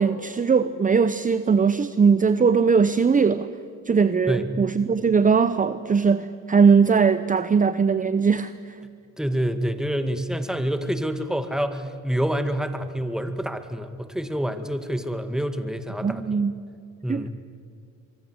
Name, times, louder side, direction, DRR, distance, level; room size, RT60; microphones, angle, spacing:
voice 1, 0.0-3.5 3.9-8.8 16.0-16.5 17.1-17.3, right 5 dB, 25° right, 12 dB, 0.8 m, -20 dB
voice 2, 9.2-16.4 17.0-17.3, equal, ahead, 8 dB, 2.0 m, -27 dB
24.5 x 23.0 x 8.0 m, 2.3 s
cardioid pair, 90°, 30 cm